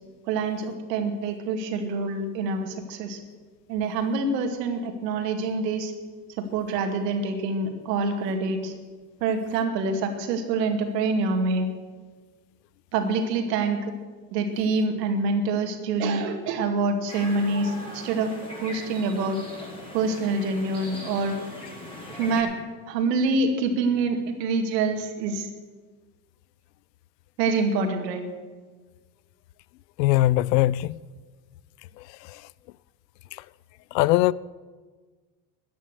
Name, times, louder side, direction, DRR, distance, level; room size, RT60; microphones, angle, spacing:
voice 1, 0.3-3.2 3.7-5.9 6.4-8.7 9.2-11.7 12.9-13.9 14.3-18.3 18.6-19.4 19.9-21.4 22.1-22.5 22.9-25.5 27.4-28.2, right 3 dB, 75° right, 2.1 m, -26 dB
sound 1, 17.1-22.4, left 1 dB, 10° left, 5.7 m, -40 dB
voice 2, 30.0-31.0 33.9-34.3, left 16 dB, 80° left, 0.6 m, -20 dB
13.5 x 10.5 x 6.7 m
hypercardioid pair, 80°, 49 cm